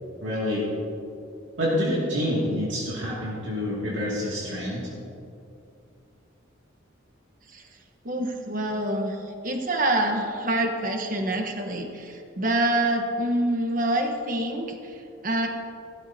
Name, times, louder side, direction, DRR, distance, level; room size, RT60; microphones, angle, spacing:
voice 1, 0.2-0.7 1.6-4.8, left 1 dB, 70° right, -6 dB, 2.4 m, -27 dB
voice 2, 8.0-9.2 9.4-15.5, right 1 dB, 45° right, 3 dB, 1.2 m, -26 dB
16.0 x 12.5 x 2.9 m, 2.6 s
head